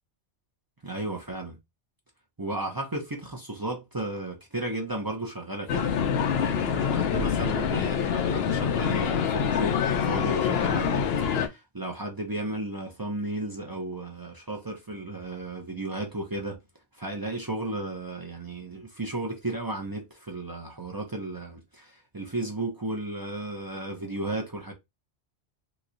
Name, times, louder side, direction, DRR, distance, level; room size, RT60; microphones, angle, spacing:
voice 1, 0.8-1.6 2.4-5.9 6.4-9.8 10.0-11.1 11.5-16.6 17.0-24.7, right 2 dB, 25° right, 0.5 m, -34 dB
sound 1, 5.7-11.5, left 7 dB, 70° left, 0.8 m, -25 dB
3.0 x 2.2 x 3.8 m
omnidirectional pair, 1.1 m